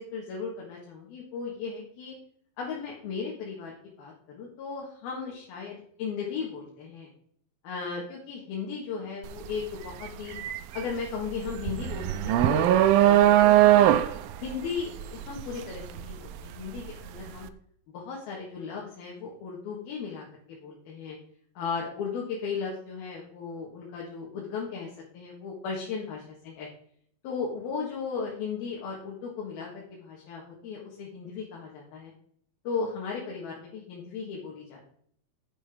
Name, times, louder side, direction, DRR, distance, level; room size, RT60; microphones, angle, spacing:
voice 1, 0.0-2.2 2.6-7.1 7.6-10.4 10.7-13.9 14.4-17.5 17.9-21.2 21.6-26.7 27.2-32.1 32.7-34.9, left 5 dB, 80° left, -3 dB, 3.6 m, -36 dB
sound 1, 9.2-9.5 9.9-16.9, right 13 dB, 85° right, 2.3 m, -21 dB
10.0 x 7.8 x 3.7 m, 0.64 s
omnidirectional pair, 4.3 m